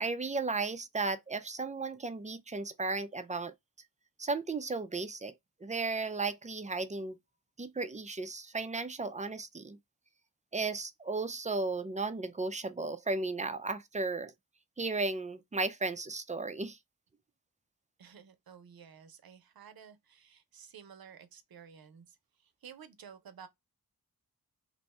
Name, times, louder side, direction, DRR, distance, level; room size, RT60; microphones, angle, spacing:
voice 1, 0.0-3.5 4.2-5.3 5.6-7.2 7.6-9.8 10.5-14.3 14.8-16.8, right 3 dB, 20° right, 0.4 m, -35 dB
voice 2, 18.0-22.2 22.4-23.5, right 7 dB, 75° right, 0.6 m, -53 dB
2.6 x 2.2 x 4.1 m
wide cardioid pair, 75°, 37 cm